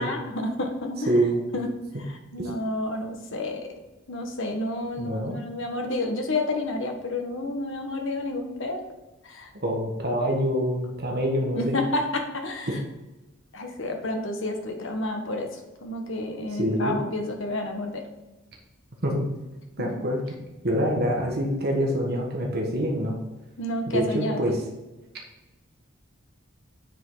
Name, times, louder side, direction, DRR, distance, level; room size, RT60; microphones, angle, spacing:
voice 1, 0.0-1.1 1.5-1.7 2.0-3.7 4.1-8.8 9.2-9.5 11.5-12.8 13.5-18.0 19.8-19.9 23.6-24.5, left 2 dB, 60° left, 3 dB, 1.3 m, -30 dB
voice 2, 1.1-1.4 2.4-2.5 5.0-5.4 9.6-11.8 12.7-12.8 16.5-17.0 19.0-19.2 19.8-20.2 20.6-23.2 23.9-24.6, equal, 45° right, 0 dB, 1.4 m, -25 dB
9.2 x 5.3 x 3.9 m, 1.1 s
head